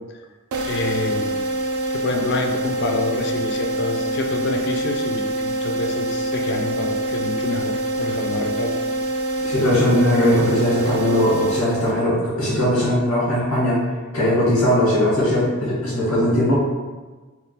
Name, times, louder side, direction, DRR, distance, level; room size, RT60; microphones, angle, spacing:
sound 1, 0.5-12.2, right 2 dB, 85° right, 0.4 m, -25 dB
voice 1, 0.7-1.4 1.9-8.8, left 3 dB, 50° left, 3 dB, 0.4 m, -27 dB
voice 2, 9.4-13.8 14.1-16.6, left 1 dB, 90° left, -10 dB, 1.3 m, -19 dB
3.5 x 2.3 x 2.7 m, 1.3 s
head